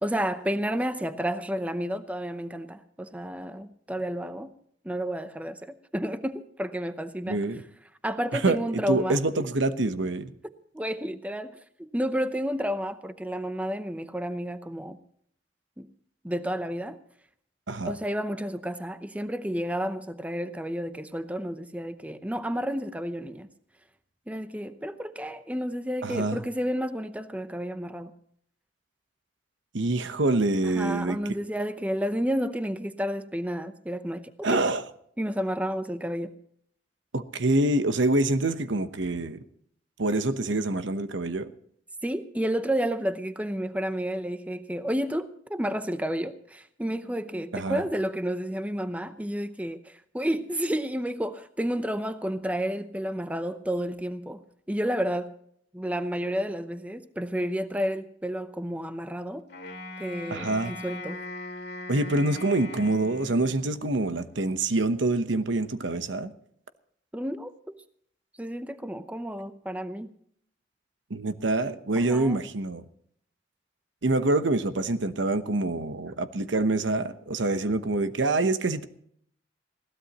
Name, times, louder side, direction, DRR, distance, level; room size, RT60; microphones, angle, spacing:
voice 1, 0.0-4.5 4.8-7.4 8.0-9.5 10.7-15.0 15.8-15.9 16.2-17.0 17.8-23.5 24.3-28.1 30.6-34.6 35.2-36.3 42.0-54.4 54.7-55.3 55.7-59.4 60.0-61.2 67.1-67.5 68.4-70.1 72.0-72.4, equal, 10° right, 0.7 m, -31 dB
voice 2, 7.3-7.6 8.3-8.6 8.9-10.3 17.7-17.9 26.0-26.4 29.7-31.2 34.4-34.8 37.1-39.4 40.0-41.5 47.5-47.8 60.3-60.7 61.9-66.3 71.1-72.8 74.0-78.9, right 2 dB, 85° right, 1.0 m, -26 dB
Wind instrument woodwind instrument, 59.5-63.9, left 2 dB, 60° left, 2.3 m, -40 dB
21.0 x 16.0 x 3.0 m
head